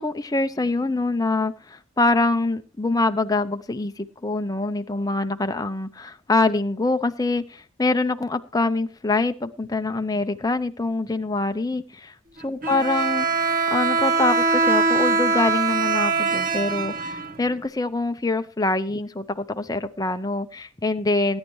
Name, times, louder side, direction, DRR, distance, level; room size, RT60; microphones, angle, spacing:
voice 1, 0.0-12.1 12.4-13.3 13.7-21.4, left 2 dB, 20° left, 8 dB, 0.6 m, -24 dB
Bowed string instrument, 12.6-17.7, right 4 dB, 40° right, 1.0 m, -22 dB
19.5 x 9.7 x 3.1 m, 0.36 s
head